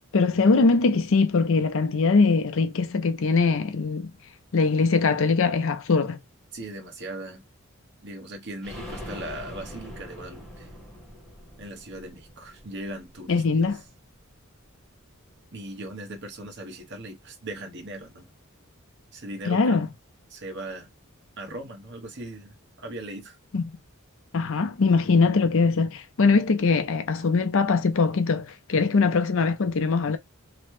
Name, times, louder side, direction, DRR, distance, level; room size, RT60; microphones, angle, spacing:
voice 1, 0.1-4.1 4.5-6.2 13.3-13.8 19.5-19.9 23.5-23.6 24.3-30.2, left 4 dB, 65° left, 0.6 m, -22 dB
voice 2, 6.5-7.4 8.0-10.7 11.6-13.7 15.5-18.3 19.1-19.8 20.3-20.9 21.4-23.4, right 1 dB, 55° right, 1.0 m, -39 dB
sound 1, 8.6-14.2 14.6-14.7 15.0-15.1, equal, 5° left, 1.0 m, -43 dB
3.0 x 2.1 x 3.1 m
head